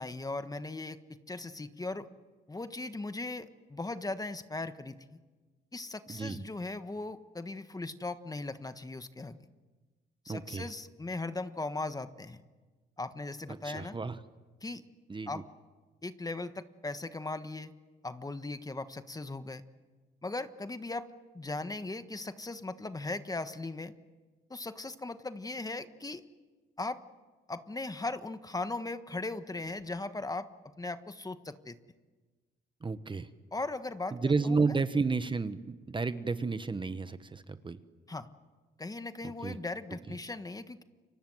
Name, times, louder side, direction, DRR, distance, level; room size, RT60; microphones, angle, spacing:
voice 1, 0.0-2.1 2.5-5.2 5.7-9.4 10.2-12.4 13.0-14.0 14.6-14.8 15.3-15.4 16.0-17.7 18.0-19.6 20.2-21.1 21.3-23.9 24.5-26.2 26.8-27.0 27.5-31.8 33.5-34.2 34.4-34.8 38.1-38.3 38.8-40.8, left 2 dB, 20° left, 11 dB, 1.4 m, -38 dB
voice 2, 6.1-6.4 10.3-10.7 13.5-14.2 15.1-15.4 32.8-33.3 34.1-37.8 39.4-39.6, right 4 dB, 25° right, 12 dB, 1.2 m, -32 dB
29.5 x 24.5 x 7.9 m, 1.3 s
cardioid pair, 90°, 20 cm